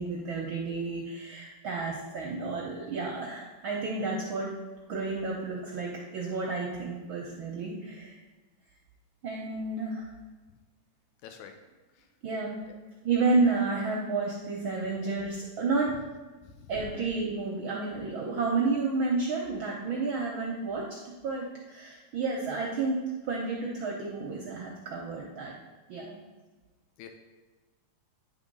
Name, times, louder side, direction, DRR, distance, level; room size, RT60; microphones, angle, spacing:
voice 1, 0.0-4.5 4.9-8.1 9.2-10.1 12.2-12.5 13.0-16.0 16.7-25.5 25.9-26.1, right 3 dB, 70° right, -2 dB, 1.2 m, -31 dB
voice 2, 11.2-11.6 12.0-12.1 12.7-12.8 16.6-16.7 27.0-27.1, left 9 dB, 85° left, 5 dB, 2.1 m, -47 dB
9.8 x 3.7 x 5.3 m, 1.3 s
omnidirectional pair, 3.3 m